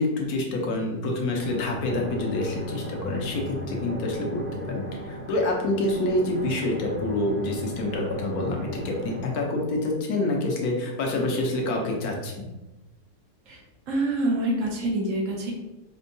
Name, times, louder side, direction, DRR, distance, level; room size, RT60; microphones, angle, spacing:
voice 1, 0.0-12.3, left 2 dB, 70° left, 0 dB, 1.1 m, -27 dB
sound 1, 1.3-9.3, right 2 dB, 10° left, 0.6 m, -37 dB
voice 2, 13.9-15.5, right 2 dB, 65° right, 0 dB, 0.9 m, -26 dB
4.4 x 2.2 x 2.6 m, 1.0 s
omnidirectional pair, 1.7 m